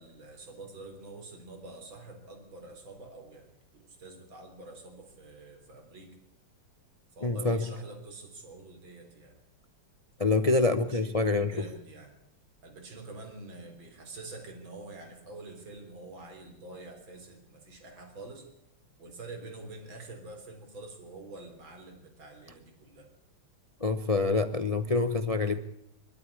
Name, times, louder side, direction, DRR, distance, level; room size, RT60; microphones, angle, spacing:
voice 1, 0.0-6.1 7.1-9.4 10.4-12.1 12.6-18.5 19.0-23.1, right 2 dB, 60° right, 4 dB, 4.5 m, -47 dB
voice 2, 7.2-7.7 10.2-11.6 23.8-25.6, left 3 dB, 60° left, 10 dB, 0.3 m, -26 dB
23.5 x 13.0 x 8.4 m, 0.80 s
omnidirectional pair, 2.4 m